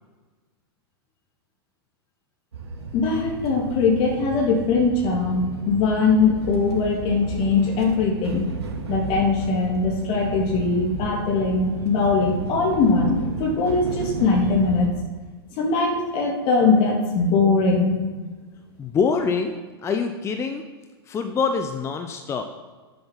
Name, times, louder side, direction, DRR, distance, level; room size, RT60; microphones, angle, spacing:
sound 1, 2.5-14.9, right 4 dB, 85° right, 2.7 m, -33 dB
voice 1, 2.9-8.4 8.9-14.9 15.6-18.0, left 4 dB, 40° left, 1 dB, 2.6 m, -21 dB
voice 2, 18.8-20.6 21.1-22.4, left 5 dB, 20° left, 6 dB, 0.9 m, -25 dB
10.5 x 7.8 x 5.8 m, 1.3 s
hypercardioid pair, 115°, 13 cm